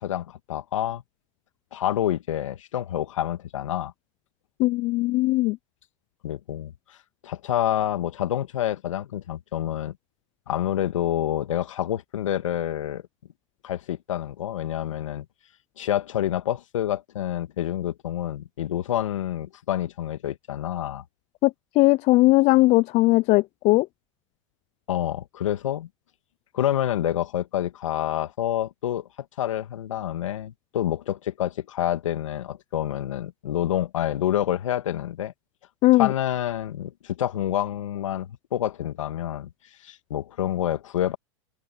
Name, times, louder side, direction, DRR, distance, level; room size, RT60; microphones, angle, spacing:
voice 1, 0.0-1.0 1.7-3.9 6.2-7.0 7.2-9.9 10.5-13.0 13.6-15.3 15.8-21.0 24.9-25.9 26.5-29.1 29.4-35.3 35.9-39.5 39.8-41.2, left 11 dB, 80° left, 2.4 m, -28 dB
voice 2, 4.6-5.6 21.4-23.9 35.8-36.1, left 20 dB, 45° left, 0.6 m, -19 dB
hypercardioid pair, 105°, 16 cm